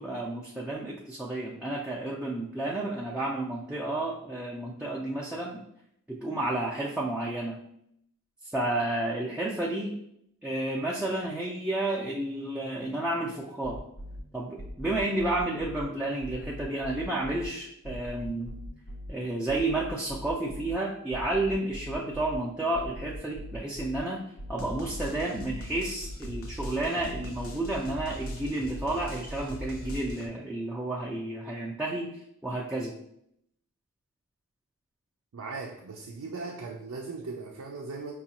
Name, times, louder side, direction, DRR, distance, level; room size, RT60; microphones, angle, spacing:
voice 1, 0.0-5.6 6.1-7.6 8.5-10.0 10.4-13.8 14.3-18.6 19.1-24.2 24.5-32.1 32.4-33.0, right 2 dB, 5° right, -5 dB, 0.4 m, -31 dB
sound 1, 13.6-14.2 14.6-15.8 16.2-17.5 17.8-19.1 19.5-20.7 21.1-22.4 22.7-24.0 24.4-30.3, equal, 80° left, 0.7 m, -40 dB
voice 2, 35.3-38.1, right 4 dB, 90° right, 0 dB, 0.4 m, -38 dB
5.0 x 2.3 x 2.9 m, 0.72 s
head